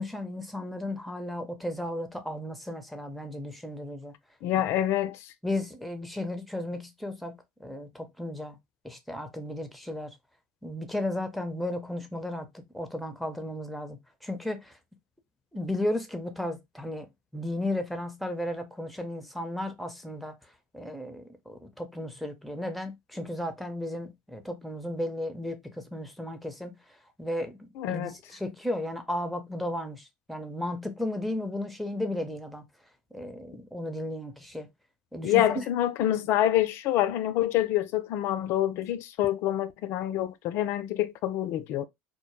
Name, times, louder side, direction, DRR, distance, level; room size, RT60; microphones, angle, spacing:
voice 1, 0.0-4.1 5.4-8.6 8.8-10.1 10.6-14.0 14.2-14.7 15.5-17.1 17.3-20.3 20.7-26.8 27.2-32.6 33.1-34.7 35.1-35.6, left 1 dB, ahead, 0.6 m, -34 dB
voice 2, 4.4-5.3 27.8-28.2 35.2-41.9, left 12 dB, 60° left, 0.3 m, -27 dB
2.1 x 2.0 x 3.0 m
hypercardioid pair, 80°, 5 cm